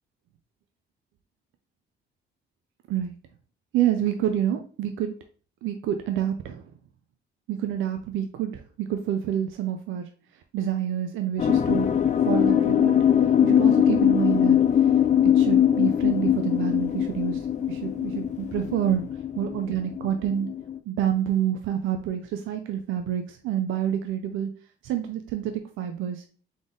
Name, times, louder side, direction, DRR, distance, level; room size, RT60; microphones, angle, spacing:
voice 1, 3.7-5.1 5.6-6.6 7.5-10.1 10.5-11.9 12.3-12.9 13.4-14.6 15.2-19.0 19.4-20.5 20.9-24.5 24.8-26.2, right 10 dB, 85° right, 7 dB, 0.5 m, -28 dB
sound 1, 11.4-20.8, left 9 dB, 35° left, 0.4 m, -22 dB
3.8 x 3.7 x 3.6 m, 0.42 s
cardioid pair, 90°, 20 cm